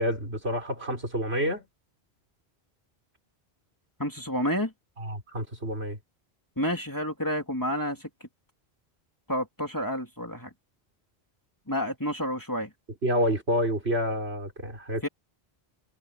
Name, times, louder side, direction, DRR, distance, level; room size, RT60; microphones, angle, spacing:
voice 1, 0.0-1.6 5.0-6.0 13.0-15.0, equal, 75° right, 5.2 m, -28 dB
voice 2, 4.0-4.7 6.6-8.1 9.3-10.5 11.7-12.7 15.0-15.1, equal, 20° left, 3.1 m, -29 dB
omnidirectional pair, 1.1 m